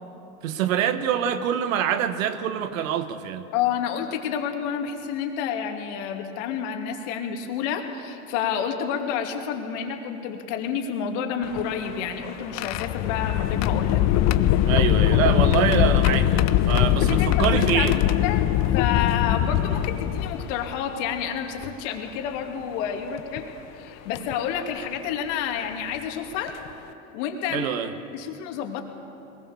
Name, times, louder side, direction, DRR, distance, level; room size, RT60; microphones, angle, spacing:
voice 1, 0.4-3.5 14.6-18.0 27.5-27.9, right 9 dB, 65° right, 11 dB, 1.6 m, -25 dB
voice 2, 3.5-14.0 15.1-15.3 17.0-23.5 23.8-26.6 27.1-27.7 28.1-28.8, left 8 dB, 55° left, 4 dB, 2.8 m, -29 dB
sound 1, 11.4-20.7 21.6-21.7 23.2-23.4 24.1-24.3 25.9-26.0 26.5-26.7, left 12 dB, 40° left, 0.9 m, -22 dB
22.0 x 20.0 x 7.2 m, 2.7 s
hypercardioid pair, 100°, 42 cm